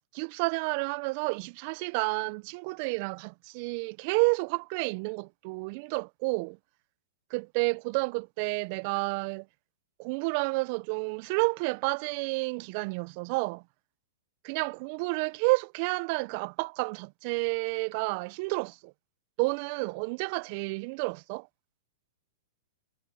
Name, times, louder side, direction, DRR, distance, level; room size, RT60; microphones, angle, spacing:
voice 1, 0.1-6.6 7.3-9.5 10.0-13.6 14.4-18.9 19.4-21.5, right 30 dB, 50° right, 0.7 m, -30 dB
hypercardioid pair, 110°, 0 cm